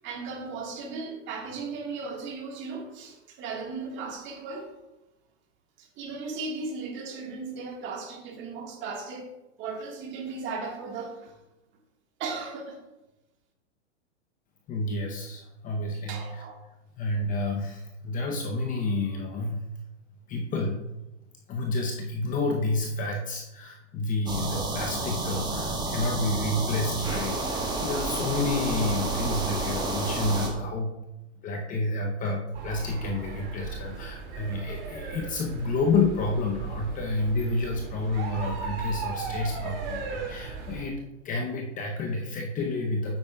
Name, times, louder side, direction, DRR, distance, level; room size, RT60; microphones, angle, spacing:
voice 1, 0.0-4.7 5.8-9.3 9.6-11.3 12.2-12.8 16.1-16.6, right 4 dB, 30° right, 2 dB, 1.6 m, -36 dB
voice 2, 14.7-16.4 17.0-19.7 20.3-20.8 21.5-30.9 31.4-43.2, left 2 dB, 20° left, 2 dB, 0.7 m, -29 dB
sound 1, 24.3-30.5, right 2 dB, 10° right, 1.3 m, -30 dB
sound 2, 32.5-40.9, right 5 dB, 50° right, 2.1 m, -37 dB
8.7 x 8.3 x 2.3 m, 0.98 s
hypercardioid pair, 125°, 37 cm